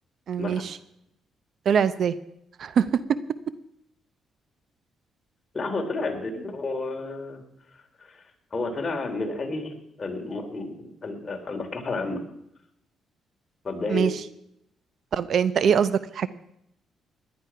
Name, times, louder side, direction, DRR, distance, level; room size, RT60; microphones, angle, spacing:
voice 1, 0.3-0.8 1.7-2.1 2.6-2.9 13.9-14.1 15.1-16.3, right 7 dB, 60° right, 15 dB, 0.7 m, -23 dB
voice 2, 5.5-7.4 8.0-8.2 8.5-12.2 13.6-14.1, left 3 dB, 35° left, 3 dB, 3.2 m, -31 dB
17.5 x 11.5 x 5.8 m, 0.78 s
cardioid pair, 90°, 0 cm